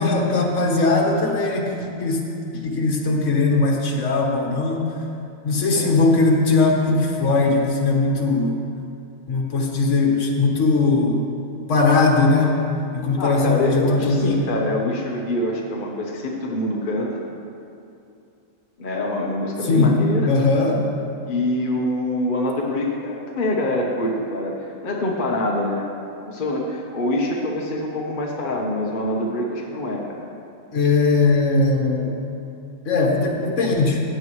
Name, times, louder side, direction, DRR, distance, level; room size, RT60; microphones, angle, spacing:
voice 1, 0.0-1.7 2.0-2.2 2.6-4.9 5.4-8.6 9.3-11.2 11.7-12.6 12.9-14.4 19.7-20.0 20.3-20.8 30.7-32.1 32.8-34.0, left 3 dB, 70° left, 0 dB, 1.6 m, -19 dB
voice 2, 13.2-17.2 18.8-20.3 21.3-25.9 26.3-30.2, left 1 dB, 45° left, -1 dB, 1.1 m, -25 dB
15.5 x 9.1 x 3.1 m, 2.6 s
omnidirectional pair, 1.3 m